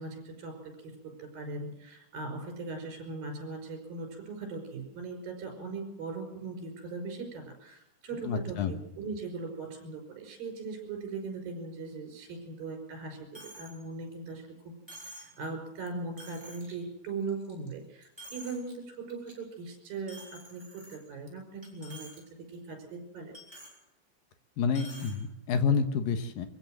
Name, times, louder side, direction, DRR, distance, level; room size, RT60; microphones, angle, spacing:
voice 1, 0.0-23.4, right 3 dB, 55° right, 4 dB, 6.8 m, -40 dB
voice 2, 8.2-8.7 24.6-26.5, left 5 dB, 65° left, 8 dB, 2.6 m, -28 dB
Coin (dropping), 13.3-13.8 14.1-14.2 14.9-15.3 15.9-16.0 16.2-16.7 17.2-17.7 18.0-18.7 19.1-19.3 20.1-21.3 21.6-22.2 22.5-22.6 23.3-23.8 24.7-25.2, right 1 dB, 5° right, 7.1 m, -48 dB
24.5 x 16.0 x 7.7 m, 0.85 s
omnidirectional pair, 5.2 m